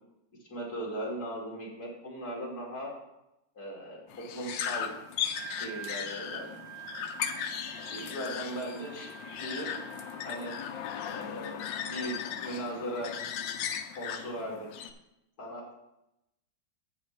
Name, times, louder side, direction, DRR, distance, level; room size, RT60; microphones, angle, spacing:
voice 1, 0.5-2.9 3.5-4.0 4.3-4.9 5.6-6.6 7.9-9.1 9.4-9.7 10.2-10.6 11.1-13.1 14.0-14.7 15.4-15.7, equal, 50° left, -4 dB, 2.9 m, -38 dB
sound 1, 4.1-14.9, left 8 dB, 75° left, 1.3 m, -37 dB
Wind instrument woodwind instrument, 5.1-10.4, right 8 dB, 75° right, 0.7 m, -47 dB
16.0 x 5.6 x 3.2 m, 0.88 s
omnidirectional pair, 2.1 m